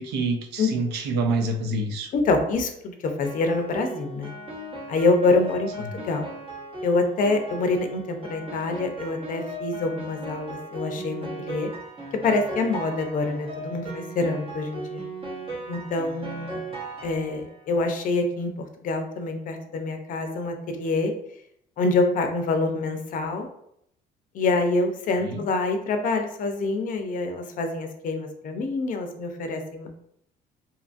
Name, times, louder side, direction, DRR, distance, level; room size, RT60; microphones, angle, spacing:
voice 1, 0.0-2.1 5.8-6.0 25.2-25.4, right 2 dB, 80° right, 5 dB, 0.5 m, -27 dB
voice 2, 2.1-4.3 4.9-5.7 5.9-6.3 6.8-11.7 12.2-15.0 15.7-16.6 17.0-18.5 18.8-21.1 21.8-23.5 24.3-29.9, left 3 dB, 50° left, 5 dB, 0.5 m, -26 dB
Piano, 3.2-17.6, right 2 dB, 35° right, 0.8 m, -37 dB
2.8 x 2.4 x 2.5 m, 0.73 s
cardioid pair, 110°, 17 cm